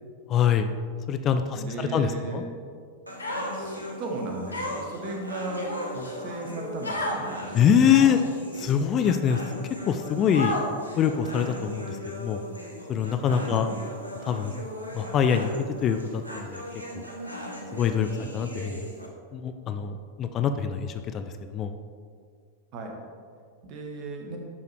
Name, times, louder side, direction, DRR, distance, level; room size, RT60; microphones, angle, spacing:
voice 1, 0.3-0.7 1.1-2.4 7.5-8.2 8.6-9.4 9.9-10.6 11.0-12.4 12.9-13.7 14.3-14.5 14.9-15.5 15.8-16.6 16.9-17.1 17.7-18.1 18.3-18.9 19.3-21.7, left 8 dB, 30° left, 8 dB, 0.4 m, -24 dB
voice 2, 1.5-2.4 3.5-7.7 13.5-13.7 18.2-18.3 22.7-23.0 23.6-24.4, right 2 dB, 40° right, 2 dB, 1.2 m, -36 dB
sound 1, 3.1-19.1, equal, 85° right, 0.9 m, -39 dB
Human voice, 3.2-3.8 4.5-5.0 5.5-6.1 6.8-7.2 7.8-8.3 9.0-9.1 10.3-10.9, left 1 dB, 80° left, 1.0 m, -31 dB
11.5 x 4.7 x 3.2 m, 2.1 s
figure-of-eight pair, 90°, 0 cm